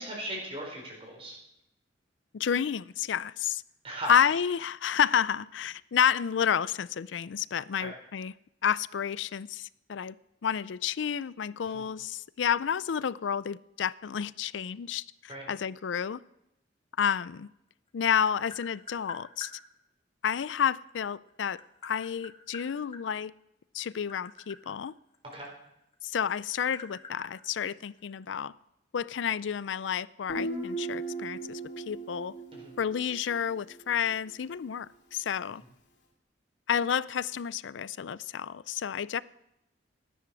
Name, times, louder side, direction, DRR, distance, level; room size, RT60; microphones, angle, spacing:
voice 1, 0.0-1.4 3.8-4.1 7.8-7.9 11.6-11.9 15.3-15.4 25.3-25.5 32.5-32.7, right 1 dB, 30° right, 0 dB, 4.1 m, -38 dB
voice 2, 2.3-3.6 4.1-8.3 8.6-10.2 10.4-16.2 17.0-17.5 17.9-19.5 20.2-23.3 23.7-24.9 26.0-28.5 28.9-32.3 32.8-35.6 36.7-39.2, left 8 dB, 85° left, 19 dB, 0.4 m, -30 dB
Tap, 17.7-19.6 20.9-23.0 23.8-25.9 26.2-28.2, left 4 dB, 35° left, 1.7 m, -47 dB
Guitar, 30.3-33.9, right 2 dB, 70° left, 2.8 m, -38 dB
15.5 x 10.0 x 6.2 m, 0.84 s
head